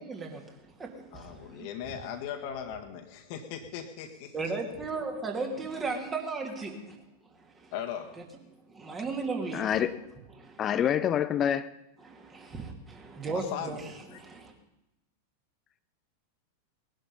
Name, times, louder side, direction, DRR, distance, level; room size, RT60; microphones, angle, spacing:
voice 1, 0.0-1.7 4.3-7.7 8.2-8.3 8.7-9.8 10.3-10.9 12.0-14.5, right 3 dB, 20° right, 2.6 m, -36 dB
voice 2, 1.1-4.3 7.7-8.2 13.3-13.8 14.1-14.2, left 8 dB, 45° left, 1.7 m, -38 dB
voice 3, 9.5-9.9 10.6-11.7, left 9 dB, 30° left, 0.6 m, -26 dB
19.5 x 11.5 x 5.5 m
figure-of-eight pair, 90°, 0 cm